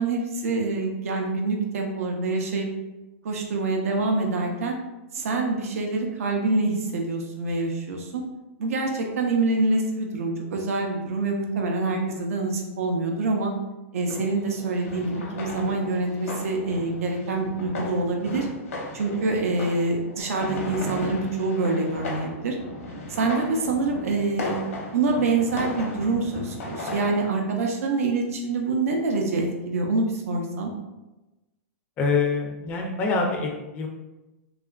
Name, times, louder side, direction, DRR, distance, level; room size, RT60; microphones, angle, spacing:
voice 1, 0.0-2.7 3.2-4.8 5.1-8.2 8.6-13.5 13.9-18.5 18.9-22.6 23.1-30.7, right 3 dB, 85° right, 2 dB, 0.5 m, -26 dB
sound 1, 14.1-27.4, left 2 dB, 80° left, 0.7 m, -36 dB
voice 2, 32.0-33.9, left 4 dB, 20° left, 0 dB, 0.3 m, -25 dB
2.8 x 2.4 x 2.3 m, 1.0 s
hypercardioid pair, 155°, 8 cm